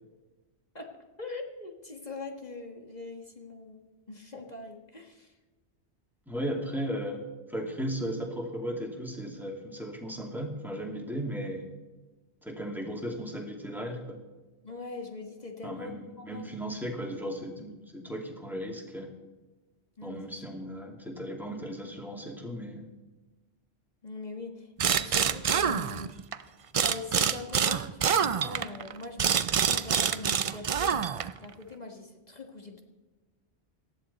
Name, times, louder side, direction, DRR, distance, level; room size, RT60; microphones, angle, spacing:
voice 1, 1.2-5.3 14.6-16.5 20.0-20.4 24.0-26.2 26.8-31.0 31.4-32.8, left 3 dB, 40° left, 2 dB, 1.6 m, -42 dB
voice 2, 6.3-7.2 7.5-11.7 12.4-14.2 15.6-19.1 20.0-22.9, equal, ahead, 0 dB, 2.4 m, -36 dB
sound 1, 24.8-26.4 26.7-31.4, right 7 dB, 55° right, 0.4 m, -26 dB
18.5 x 13.5 x 4.1 m, 1.2 s
omnidirectional pair, 1.2 m